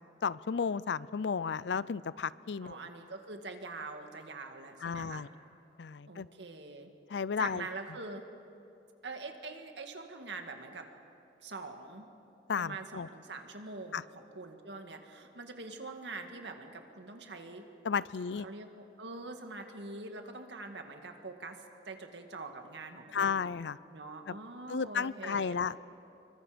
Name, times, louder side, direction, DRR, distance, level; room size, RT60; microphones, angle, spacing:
voice 1, 0.2-2.8 4.8-5.3 5.8-6.3 7.1-7.7 12.5-13.1 13.9-14.0 17.8-18.5 23.1-23.8 24.3-24.4 24.7-25.8, left 6 dB, 85° left, 19 dB, 0.5 m, -33 dB
voice 2, 2.6-5.3 6.1-6.9 7.4-8.2 9.0-10.9 11.4-12.1 12.6-17.7 18.4-23.5 23.9-25.6, right 3 dB, 90° right, 5 dB, 2.0 m, -44 dB
27.0 x 24.0 x 5.1 m, 2.7 s
head